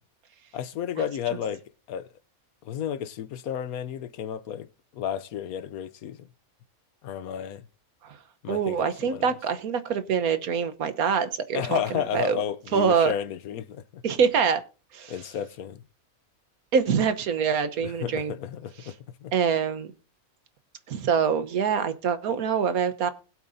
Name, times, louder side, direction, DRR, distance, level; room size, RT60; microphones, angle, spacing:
voice 1, 0.5-1.6 1.9-2.1 2.6-4.7 4.9-6.3 7.0-7.6 8.4-9.3 11.5-14.0 15.1-15.8 17.8-19.3, left 9 dB, 80° left, 1.2 m, -32 dB
voice 2, 8.5-12.4 12.7-13.1 14.0-14.6 14.9-15.1 16.7-18.3 19.3-19.9 20.9-23.1, right 6 dB, 80° right, 1.5 m, -25 dB
20.5 x 7.9 x 2.7 m
omnidirectional pair, 1.5 m